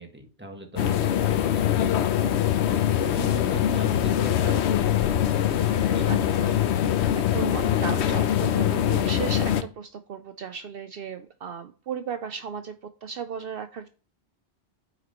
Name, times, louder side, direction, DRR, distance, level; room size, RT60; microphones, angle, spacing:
voice 1, 0.0-6.4 6.6-6.8, right 1 dB, 10° right, 3 dB, 1.5 m, -41 dB
sound 1, 0.8-9.6, left 10 dB, 80° left, 0.9 m, -23 dB
voice 2, 1.2-1.5 2.9-3.0 4.0-4.1 5.6-6.6 7.1-13.9, right 6 dB, 65° right, 9 dB, 0.8 m, -36 dB
9.2 x 6.0 x 3.0 m, 0.36 s
omnidirectional pair, 1.1 m